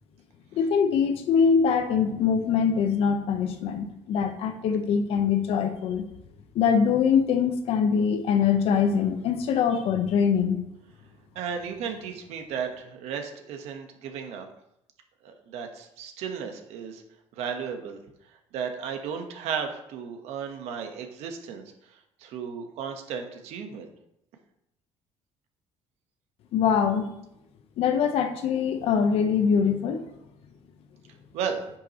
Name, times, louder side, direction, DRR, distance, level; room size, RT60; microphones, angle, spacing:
voice 1, 0.5-6.1 6.5-10.6 26.5-27.1 27.8-30.0, left 6 dB, 65° left, 8 dB, 0.9 m, -23 dB
voice 2, 11.3-14.5 15.2-17.0 17.3-21.6 22.2-23.9 31.3-31.7, right 7 dB, 85° right, 5 dB, 1.1 m, -34 dB
9.9 x 5.8 x 3.0 m, 0.82 s
cardioid pair, 135°, 11 cm